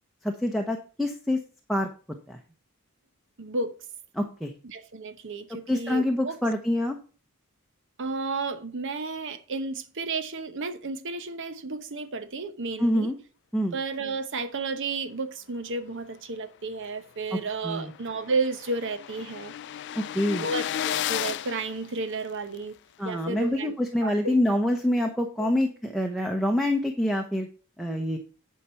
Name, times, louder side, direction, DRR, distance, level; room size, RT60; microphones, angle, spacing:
voice 1, 0.2-1.4 1.7-1.9 2.3-2.4 4.1-4.5 5.7-7.0 12.8-13.2 13.5-13.7 17.3-17.4 17.6-17.9 20.0-20.5 23.0-27.5 27.8-28.2, left 1 dB, ahead, 0.8 m, -26 dB
voice 2, 3.4-3.8 4.6-6.4 8.0-13.1 13.7-19.5 20.3-22.7 23.0-23.7 24.0-24.4 25.4-25.5, right 3 dB, 60° right, 0.9 m, -32 dB
sound 1, 17.0-17.1 17.4-17.5 17.7-22.6, left 11 dB, 50° left, 0.3 m, -34 dB
9.9 x 4.7 x 5.6 m
head